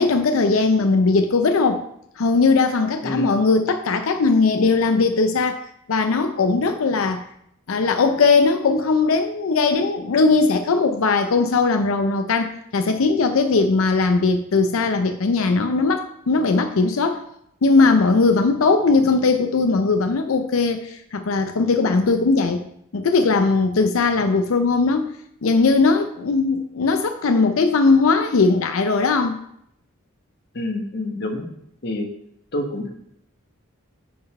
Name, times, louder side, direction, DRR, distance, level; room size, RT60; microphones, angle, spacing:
voice 1, 0.0-1.8 2.2-5.6 5.9-7.3 7.7-17.2 17.6-22.6 22.9-25.2 25.4-29.4, left 4 dB, 75° left, 7 dB, 0.5 m, -19 dB
voice 2, 30.5-31.5 31.8-32.0 32.5-32.9, left 1 dB, 55° left, 3 dB, 1.3 m, -27 dB
9.3 x 4.0 x 4.3 m, 0.73 s
head